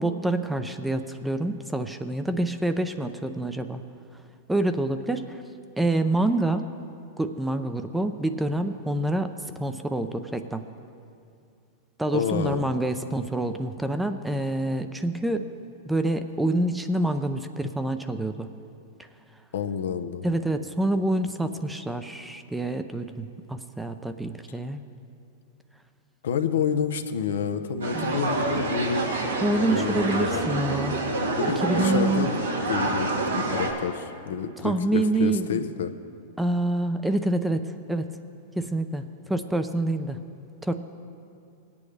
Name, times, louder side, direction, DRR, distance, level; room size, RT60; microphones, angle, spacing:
voice 1, 0.0-3.8 4.5-5.4 5.8-6.7 7.2-10.7 12.0-15.5 15.9-18.5 20.2-24.8 27.9-28.2 29.4-31.0 31.6-32.3 34.6-35.6 36.4-38.1 38.6-39.0 39.3-40.2 40.6-40.8, right 1 dB, 5° right, 9 dB, 0.5 m, -27 dB
voice 2, 12.1-12.6 19.5-20.2 26.2-29.1 29.7-30.5 31.4-32.4 32.7-35.9, left 7 dB, 75° left, 8 dB, 0.6 m, -29 dB
sound 1, 27.8-33.7, right 2 dB, 90° right, 1.6 m, -27 dB
19.5 x 8.5 x 3.3 m, 2.5 s
hypercardioid pair, 115°, 0 cm